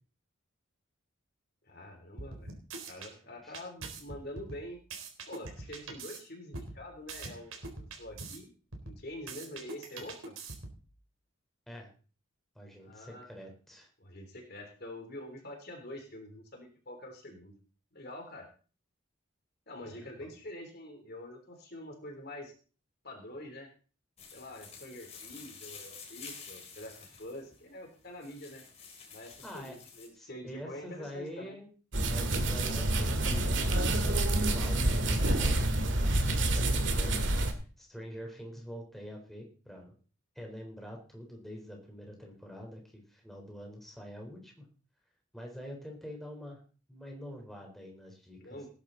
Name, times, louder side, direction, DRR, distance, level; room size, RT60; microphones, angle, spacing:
voice 1, 1.7-2.5 2.9-4.8 5.3-8.5 8.8-10.3 12.8-13.3 14.0-17.5 17.9-18.5 19.7-22.5 23.0-23.7 24.3-28.6 29.1-31.6 42.2-42.3 48.4-48.7, left 1 dB, 50° left, 3 dB, 3.4 m, -46 dB
sound 1, 2.2-3.1 3.5-6.2 6.5-8.4 8.7-10.9, right 3 dB, 80° right, 4.0 m, -44 dB
voice 2, 12.5-13.9 19.8-20.3 29.4-29.8 30.2-31.7 32.1-33.6 34.0-35.7 36.0-37.2 37.8-39.9 40.4-44.7 45.3-46.6 46.9-48.6, equal, ahead, 0 dB, 4.0 m, -46 dB
sound 2, 24.2-30.1, left 5 dB, 30° left, 3.9 m, -50 dB
sound 3, 31.9-37.5, right 1 dB, 60° right, 2.1 m, -28 dB
19.0 x 10.5 x 4.0 m, 0.38 s
head